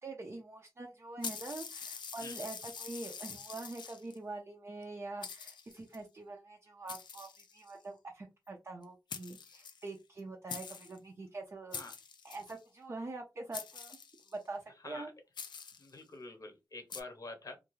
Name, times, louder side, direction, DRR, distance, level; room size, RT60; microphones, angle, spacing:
voice 1, 0.0-11.8 12.2-14.0 14.3-15.1, right 2 dB, 35° right, 0.5 m, -44 dB
sound 1, 1.2-4.2 4.8-4.9 5.2-6.0 6.9-7.8 8.8-8.9 9.1-10.2 10.5-11.0 11.7-12.6 13.5-14.4 15.4-15.9 16.9-17.0, left 6 dB, 85° left, 0.4 m, -45 dB
voice 2, 15.8-17.6, left 2 dB, 50° left, 0.7 m, -47 dB
2.5 x 2.3 x 3.0 m
wide cardioid pair, 110°, 7 cm